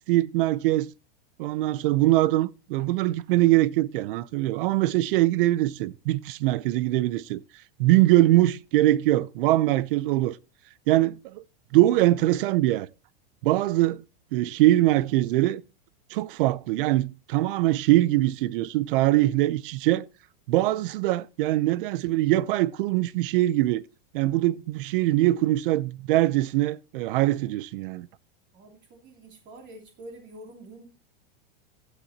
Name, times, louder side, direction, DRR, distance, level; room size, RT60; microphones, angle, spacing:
voice 1, 0.1-0.9 1.4-7.4 7.8-10.4 10.9-11.4 11.7-12.9 13.4-14.0 14.3-15.6 16.1-20.1 20.5-23.8 24.1-28.1, right 16 dB, 60° right, 0.7 m, -22 dB
voice 2, 28.5-30.9, right 1 dB, 35° right, 3.0 m, -46 dB
15.5 x 9.2 x 2.8 m
supercardioid pair, 145°, 30 cm